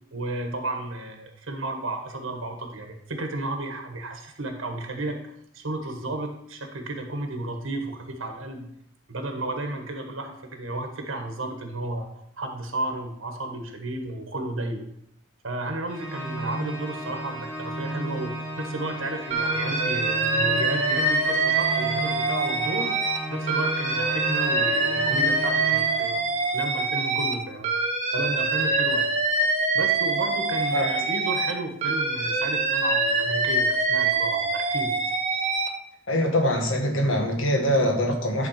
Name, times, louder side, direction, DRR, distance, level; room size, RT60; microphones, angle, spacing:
voice 1, 0.1-5.2 5.5-8.7 9.1-12.1 12.4-14.8 15.4-22.9 23.3-26.2 26.5-27.7 28.1-29.1 29.7-34.9, right 2 dB, 75° right, 4 dB, 1.3 m, -33 dB
Organ, 15.9-26.5, right 1 dB, 20° left, 2.2 m, -34 dB
Alarm, 19.3-23.2 23.5-27.3 27.6-31.5 31.8-35.7, right 3 dB, 30° right, 1.1 m, -24 dB
voice 2, 36.1-38.5, equal, 75° left, 2 dB, 1.7 m, -23 dB
10.5 x 3.9 x 5.8 m, 0.73 s
head